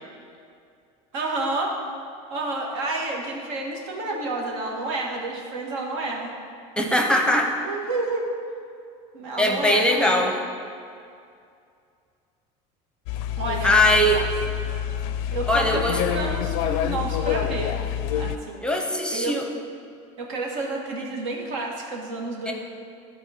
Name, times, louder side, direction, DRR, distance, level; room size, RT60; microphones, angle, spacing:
voice 1, 1.1-1.7 2.3-6.3 7.6-8.2 9.1-10.2 13.4-13.8 15.3-17.7 18.1-19.3 20.2-22.5, right 2 dB, 85° right, -1 dB, 1.7 m, -30 dB
voice 2, 6.8-7.5 9.4-10.3 13.6-14.2 15.5-16.0 18.6-19.4 22.5-22.6, left 1 dB, 5° left, 2 dB, 0.6 m, -20 dB
sound 1, 13.1-18.4, left 9 dB, 70° left, 0.4 m, -27 dB
12.5 x 4.3 x 5.0 m, 2.4 s
cardioid pair, 135°, 16 cm